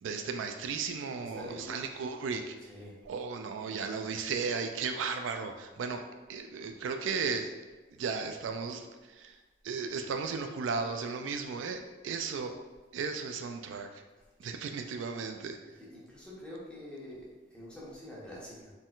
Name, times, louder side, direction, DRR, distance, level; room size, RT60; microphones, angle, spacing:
voice 1, 0.0-2.6 3.0-6.0 6.3-7.5 7.9-9.4 9.6-12.6 12.9-14.0 14.4-15.6, right 5 dB, 80° right, 6 dB, 0.3 m, -35 dB
voice 2, 1.1-1.9 2.7-2.9 15.9-18.7, left 1 dB, 5° left, -8 dB, 1.1 m, -46 dB
4.2 x 3.7 x 2.4 m, 1.2 s
head